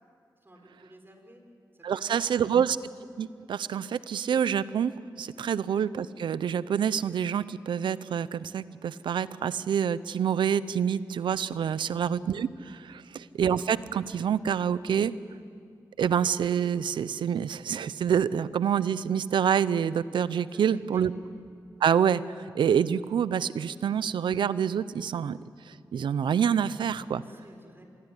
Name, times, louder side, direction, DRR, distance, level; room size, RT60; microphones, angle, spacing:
voice 1, 0.4-1.4 1.7-2.5 5.3-5.5 12.8-13.1 20.4-21.1 27.2-27.8, right 1 dB, 30° right, 3 dB, 6.3 m, -54 dB
voice 2, 1.8-2.8 3.2-4.9 5.2-15.1 16.0-21.1 21.8-22.2 22.5-25.4 25.7-27.2, right 8 dB, 90° right, 16 dB, 0.7 m, -27 dB
26.0 x 22.0 x 9.9 m, 2.4 s
cardioid pair, 50°, 8 cm